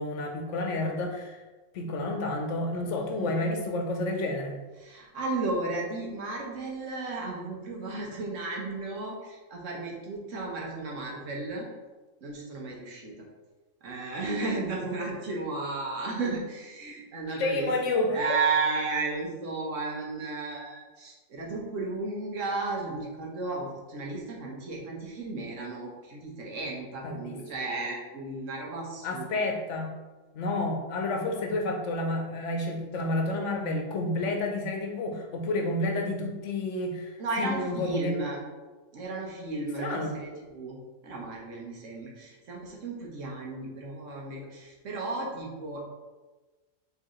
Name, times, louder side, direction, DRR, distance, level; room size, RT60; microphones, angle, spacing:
voice 1, 0.0-1.4 1.7-4.6 17.3-18.2 27.0-27.4 29.0-29.9 30.3-38.2 39.8-40.1, left 2 dB, 70° left, 2 dB, 1.0 m, -30 dB
voice 2, 2.9-3.5 4.7-11.7 12.2-13.2 13.8-29.4 37.2-38.4 38.9-40.8 41.0-45.8, right 3 dB, 75° right, -1 dB, 1.3 m, -34 dB
4.7 x 3.3 x 3.0 m, 1.2 s
omnidirectional pair, 1.3 m